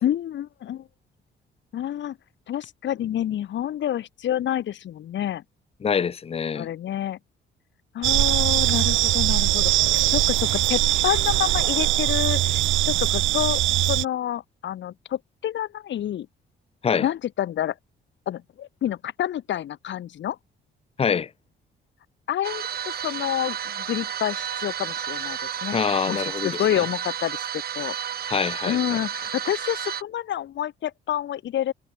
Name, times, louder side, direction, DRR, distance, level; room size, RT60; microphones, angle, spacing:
voice 1, 0.0-0.9 1.7-2.2 2.5-5.4 6.5-7.2 7.9-9.7 10.1-16.3 17.0-17.7 18.3-20.4 22.3-25.8 26.1-27.4 27.7-27.9 28.6-31.7, left 11 dB, 65° left, 1.7 m, -28 dB
voice 2, 5.8-6.7 16.8-17.1 21.0-21.3 25.7-26.8 28.3-29.0, left 6 dB, 30° left, 0.6 m, -25 dB
sound 1, 8.0-14.0, right 15 dB, 75° right, 0.6 m, -21 dB
sound 2, 22.4-30.0, right 9 dB, 50° right, 1.0 m, -31 dB
cardioid pair, 90°, 20 cm